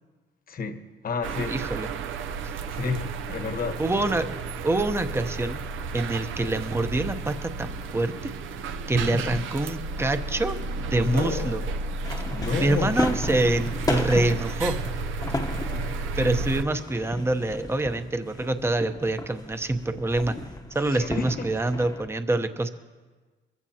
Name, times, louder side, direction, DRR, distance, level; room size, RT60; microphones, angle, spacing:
voice 1, 0.5-1.6 2.7-3.8 9.1-9.5 11.0-12.0 12.3-13.0 14.1-14.4 20.9-21.5, left 4 dB, 45° left, 1.2 m, -31 dB
sound 1, 1.2-16.6, right 3 dB, 80° right, 0.7 m, -32 dB
voice 2, 1.5-1.9 3.8-4.4 4.6-5.6 5.9-8.1 8.9-10.6 10.9-11.6 12.6-14.8 16.1-20.4 20.7-22.7, right 2 dB, 10° right, 0.8 m, -26 dB
sound 2, 12.0-22.1, left 2 dB, 20° left, 0.9 m, -35 dB
23.0 x 15.0 x 2.9 m
cardioid pair, 90°, 20 cm